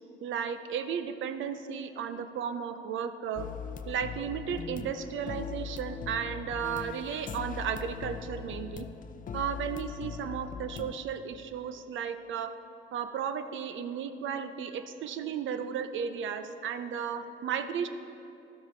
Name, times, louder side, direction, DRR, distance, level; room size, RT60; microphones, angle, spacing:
voice 1, 0.2-3.5 3.9-8.9 9.3-12.5 12.9-17.9, right 7 dB, 75° right, 9 dB, 0.6 m, -34 dB
sound 1, 3.4-11.0, left 7 dB, 40° left, 0.5 m, -40 dB
12.0 x 7.3 x 4.4 m, 2.6 s
cardioid pair, 90°, 20 cm